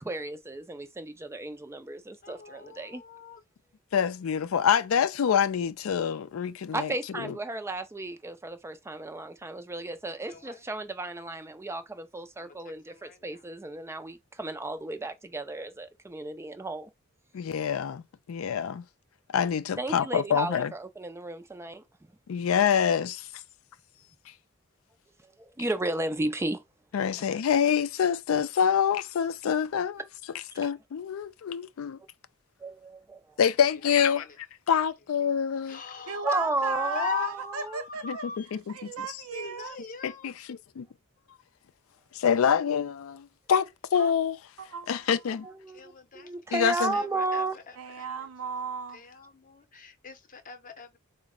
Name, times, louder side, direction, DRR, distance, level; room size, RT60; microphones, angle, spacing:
voice 1, 0.0-3.0 6.7-16.9 19.8-21.8 25.4-26.6 27.1-27.2 32.6-33.2 36.2-37.8 45.4-47.6, right 2 dB, 10° right, 0.4 m, -34 dB
voice 2, 2.2-3.4 35.7-36.2 36.9-37.7 38.0-38.4 39.3-40.3 45.8-46.3 46.9-47.0 47.3-47.4 49.5-51.0, left 7 dB, 40° left, 0.7 m, -38 dB
voice 3, 3.9-7.3 17.3-18.0 18.3-18.8 19.3-20.7 22.3-23.3 26.9-30.0 30.6-32.0 33.4-35.8 38.0-38.2 38.5-38.9 40.0-40.9 42.1-44.4 44.9-45.5 46.5-46.9, left 7 dB, 70° left, 0.4 m, -26 dB
voice 4, 36.1-39.8 43.9-44.1 44.6-45.1 47.8-49.0, right 5 dB, 75° right, 0.6 m, -36 dB
4.0 x 2.1 x 3.6 m
head